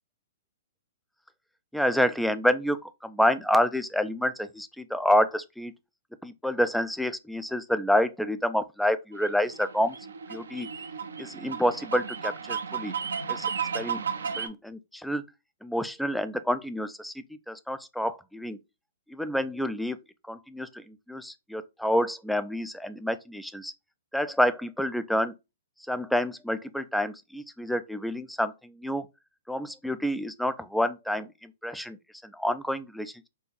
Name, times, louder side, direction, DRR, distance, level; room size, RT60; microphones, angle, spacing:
voice 1, 1.7-5.7 6.2-10.0 10.3-10.7 11.2-12.9 13.3-13.5 13.7-14.0 14.4-15.2 15.6-17.1 17.5-18.6 19.1-20.0 20.3-23.7 24.1-25.3 25.9-29.1 29.5-31.3 31.6-32.0 32.3-33.3, equal, ahead, 0.4 m, -28 dB
sound 1, 9.2-14.5, right 6 dB, 75° right, 0.5 m, -34 dB
4.4 x 2.4 x 3.2 m
figure-of-eight pair, 115°, 0 cm